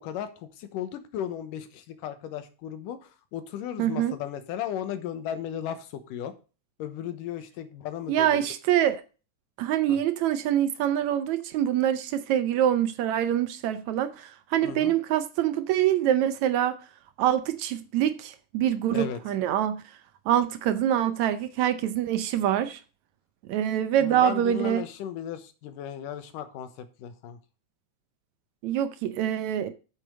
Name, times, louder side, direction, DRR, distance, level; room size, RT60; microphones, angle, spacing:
voice 1, 0.0-6.3 6.8-8.5 9.9-10.0 14.6-14.9 18.9-19.2 24.0-27.4, left 9 dB, 90° left, 2.7 m, -35 dB
voice 2, 3.8-4.2 8.1-9.0 9.6-16.7 17.2-19.8 20.3-22.8 23.5-24.8 28.6-29.7, right 11 dB, 75° right, 1.9 m, -25 dB
8.4 x 7.8 x 5.2 m
omnidirectional pair, 3.7 m